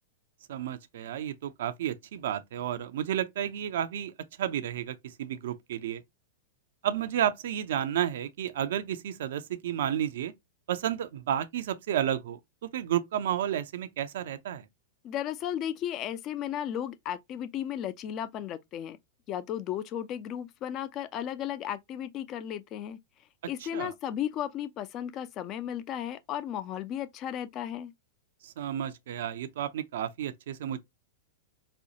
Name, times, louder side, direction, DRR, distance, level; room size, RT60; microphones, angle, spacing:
voice 1, 0.5-6.0 6.8-10.3 10.7-14.6 23.7-23.9 28.4-30.8, right 10 dB, 65° right, 0.4 m, -32 dB
voice 2, 15.0-19.0 19.3-23.0 23.5-27.9, left 10 dB, 35° left, 0.4 m, -35 dB
4.2 x 2.2 x 2.7 m
figure-of-eight pair, 100°, 0 cm